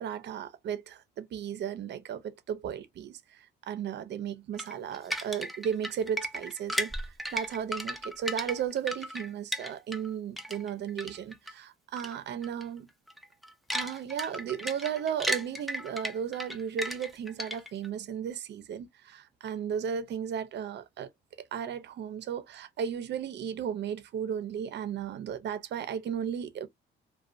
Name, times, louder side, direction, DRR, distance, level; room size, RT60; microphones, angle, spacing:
voice 1, 0.0-12.9 13.7-21.1 21.5-26.7, right 8 dB, 60° right, 0.5 m, -35 dB
sound 1, 4.6-10.1 10.4-11.5 12.0-12.2 12.4-12.6 13.1-17.9, equal, ahead, 0.4 m, -35 dB
2.4 x 2.2 x 2.4 m
cardioid pair, 90°, 20 cm